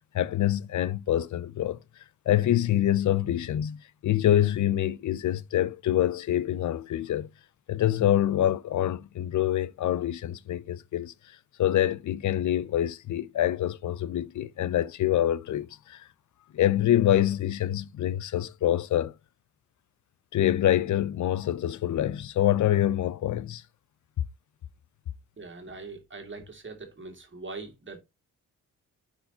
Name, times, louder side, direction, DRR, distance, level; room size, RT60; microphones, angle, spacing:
voice 1, 0.1-1.8 2.3-7.3 7.7-11.1 11.6-16.1 16.5-19.1 20.3-23.6, left 12 dB, 55° left, 0.6 m, -26 dB
voice 2, 25.4-28.0, right 3 dB, 35° right, 2.2 m, -42 dB
10.0 x 4.5 x 2.8 m
supercardioid pair, 55°, 35 cm